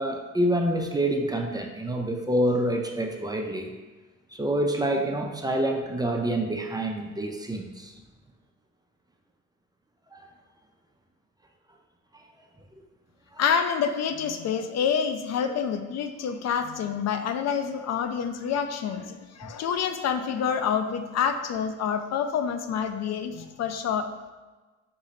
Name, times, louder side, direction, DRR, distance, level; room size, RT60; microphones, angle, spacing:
voice 1, 0.0-3.7 4.3-7.9 10.1-10.3 12.1-12.2 13.3-13.4 15.4-15.5, right 1 dB, 15° right, 2 dB, 0.4 m, -27 dB
voice 2, 13.4-24.1, left 7 dB, 60° left, 8 dB, 0.4 m, -27 dB
3.8 x 3.0 x 4.2 m, 1.3 s
cardioid pair, 90°, 30 cm